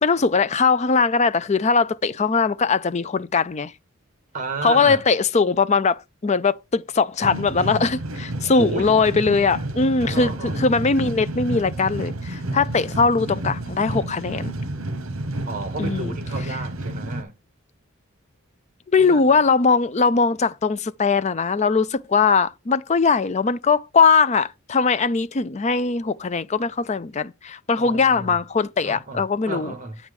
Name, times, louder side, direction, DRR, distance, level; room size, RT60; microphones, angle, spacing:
voice 1, 0.0-3.7 4.6-14.5 15.8-16.2 18.9-29.7, left 4 dB, 30° left, 0.5 m, -20 dB
voice 2, 4.3-5.0 8.4-8.9 10.1-10.6 15.4-17.3 19.0-19.4 27.8-28.4 28.8-30.0, right 3 dB, 40° right, 1.7 m, -32 dB
sound 1, 7.2-17.2, right 1 dB, 70° right, 1.0 m, -30 dB
8.5 x 4.7 x 5.2 m
head